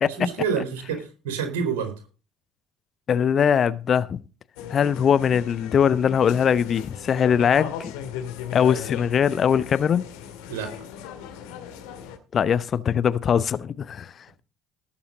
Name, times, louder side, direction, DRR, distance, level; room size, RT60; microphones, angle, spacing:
voice 1, 0.1-1.9 10.5-10.7, right 6 dB, 65° right, 4.1 m, -28 dB
voice 2, 3.1-4.2 4.7-7.9 8.5-10.0 12.3-14.1, left 8 dB, 40° left, 0.8 m, -21 dB
sound 1, 4.6-12.2, left 9 dB, 65° left, 1.9 m, -37 dB
19.0 x 7.2 x 3.9 m
figure-of-eight pair, 55°, 0 cm